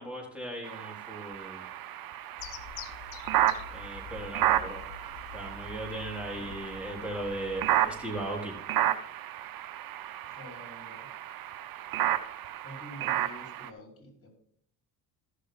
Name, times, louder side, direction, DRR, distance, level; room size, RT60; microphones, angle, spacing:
voice 1, 0.0-1.6 3.7-4.8 5.3-8.5, right 1 dB, 5° right, -2 dB, 4.0 m, -38 dB
sound 1, 0.6-13.7, right 12 dB, 55° right, 0.9 m, -32 dB
sound 2, 2.4-8.7, left 8 dB, 80° left, 0.9 m, -47 dB
voice 2, 10.2-11.1 12.6-14.3, equal, 30° left, 2 dB, 4.6 m, -48 dB
14.0 x 6.5 x 3.9 m, 0.65 s
supercardioid pair, 80°, 41 cm